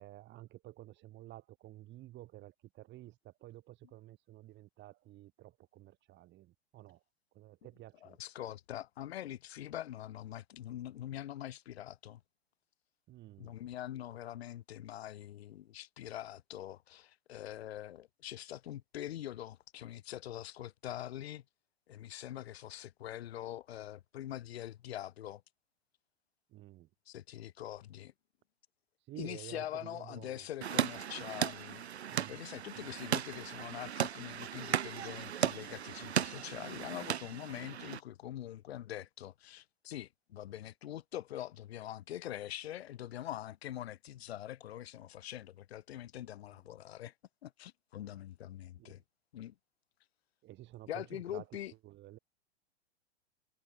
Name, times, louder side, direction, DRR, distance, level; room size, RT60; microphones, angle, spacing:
voice 1, 0.0-7.0 7.3-8.2 13.1-13.6 26.5-26.9 29.1-30.5 32.1-32.4 32.7-32.9 46.5-46.6 48.8-49.0 50.4-51.5 51.8-52.2, right 15 dB, 35° right, 3.0 m, -52 dB
voice 2, 8.0-12.2 13.4-21.4 21.9-25.4 27.1-28.1 29.2-31.9 32.3-47.1 47.4-49.0 49.3-49.5 50.9-51.7, left 12 dB, 70° left, 0.7 m, -44 dB
sound 1, 30.6-38.0, right 9 dB, 80° right, 0.7 m, -36 dB
figure-of-eight pair, 100°, 32 cm